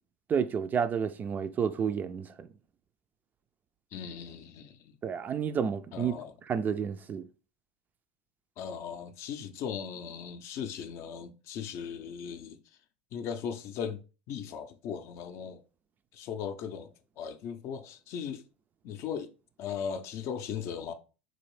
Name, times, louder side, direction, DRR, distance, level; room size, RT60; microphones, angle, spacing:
voice 1, 0.3-2.5 5.0-6.1 6.5-7.3, right 7 dB, 30° right, 0.3 m, -30 dB
voice 2, 3.9-4.9 5.9-6.3 8.6-12.6 13.1-14.0 14.3-15.6 16.1-18.4 18.8-19.3 19.6-20.9, left 7 dB, 50° left, 0.5 m, -38 dB
3.9 x 2.6 x 3.1 m
hypercardioid pair, 85°, 6 cm